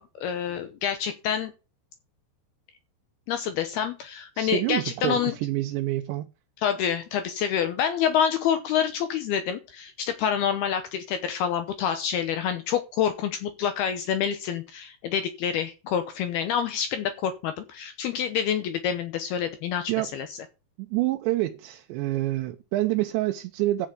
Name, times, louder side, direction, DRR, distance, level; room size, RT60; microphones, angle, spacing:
voice 1, 0.0-1.5 3.3-5.3 6.6-20.3, left 8 dB, 75° left, 2.4 m, -27 dB
voice 2, 4.4-6.3 19.9-20.1 20.8-23.9, right 16 dB, 80° right, 2.9 m, -27 dB
14.5 x 6.0 x 5.1 m
omnidirectional pair, 5.4 m